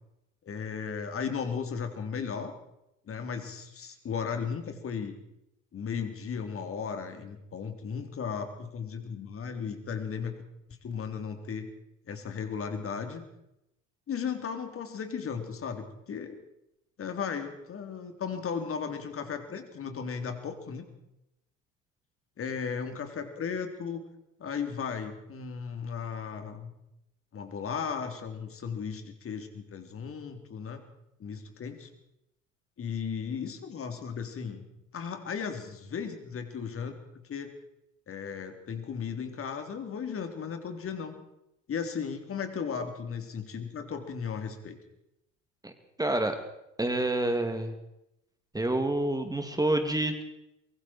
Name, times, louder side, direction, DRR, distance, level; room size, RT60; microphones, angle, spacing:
voice 1, 0.4-2.5 3.1-5.1 5.7-10.3 10.8-11.7 12.1-13.2 14.1-16.4 17.0-20.9 22.4-24.0 24.4-26.7 27.3-30.9 31.2-31.9 32.8-34.7 34.9-37.0 37.2-37.5 38.1-41.2 41.7-44.8, left 6 dB, 35° left, 6 dB, 3.7 m, -35 dB
voice 2, 46.0-46.4 46.8-47.7 48.5-50.2, right 1 dB, 10° right, 6 dB, 2.8 m, -28 dB
24.0 x 23.5 x 4.6 m, 0.85 s
figure-of-eight pair, 65°, 38 cm